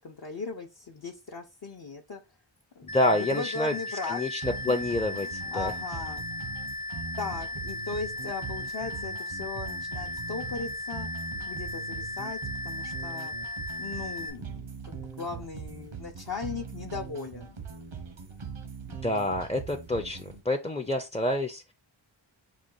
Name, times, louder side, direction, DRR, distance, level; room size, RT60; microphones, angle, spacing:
voice 1, 0.0-2.2 2.8-4.2 4.7-4.8 5.2-6.3 7.2-11.1 11.5-13.3 13.8-17.6, left 4 dB, 50° left, 0.6 m, -38 dB
voice 2, 2.8-3.7 4.0-5.7 18.9-21.7, left 1 dB, 15° left, 0.4 m, -28 dB
sound 1, 2.9-14.3, left 2 dB, 85° left, 1.0 m, -36 dB
sound 2, 4.4-20.4, right 6 dB, 90° right, 0.9 m, -41 dB
4.9 x 2.3 x 3.7 m
wide cardioid pair, 40°, 48 cm